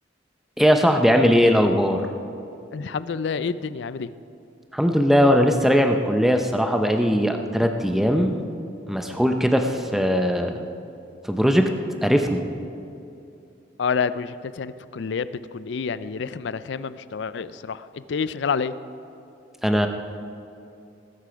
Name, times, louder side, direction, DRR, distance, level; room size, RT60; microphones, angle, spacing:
voice 1, 0.6-2.0 4.7-8.4 8.9-10.7 11.2-11.7 12.0-12.4 19.6-19.9, equal, ahead, 5 dB, 0.6 m, -19 dB
voice 2, 2.7-4.1 13.8-18.7, left 5 dB, 65° left, 15 dB, 0.4 m, -28 dB
19.5 x 8.3 x 5.1 m, 2.6 s
head